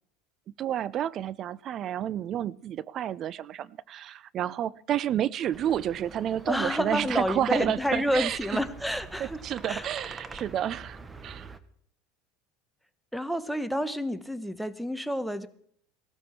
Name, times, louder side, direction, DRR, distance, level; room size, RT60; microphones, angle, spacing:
voice 1, 0.6-8.6 9.2-11.5, right 10 dB, 45° right, 22 dB, 0.5 m, -30 dB
sound 1, 5.5-11.6, right 3 dB, 20° right, 1.2 m, -45 dB
voice 2, 6.5-9.8 13.1-15.5, equal, ahead, 10 dB, 1.1 m, -29 dB
18.0 x 13.5 x 4.5 m, 0.63 s
supercardioid pair, 100°, 0 cm